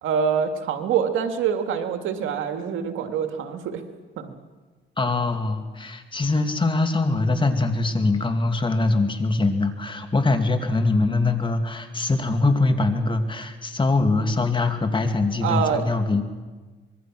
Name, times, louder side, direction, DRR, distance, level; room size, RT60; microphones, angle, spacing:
voice 1, 0.0-3.8 4.2-4.3 15.4-15.9, right 7 dB, 85° right, 7 dB, 2.0 m, -25 dB
voice 2, 5.0-16.2, left 3 dB, 25° left, 6 dB, 2.5 m, -23 dB
25.0 x 22.0 x 6.2 m, 1.3 s
cardioid pair, 90°, 20 cm